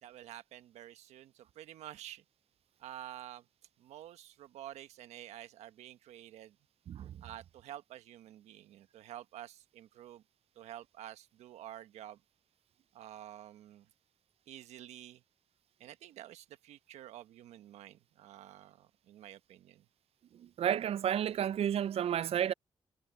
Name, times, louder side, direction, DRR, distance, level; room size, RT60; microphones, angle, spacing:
voice 1, 0.0-2.2 2.8-3.5 3.8-6.6 7.2-10.2 10.5-12.2 12.9-13.9 14.5-15.2 15.8-19.9, right 12 dB, 85° right, 1.3 m, -50 dB
voice 2, 6.9-7.2 20.6-22.5, right 10 dB, 65° right, 0.4 m, -31 dB
supercardioid pair, 50°, 11 cm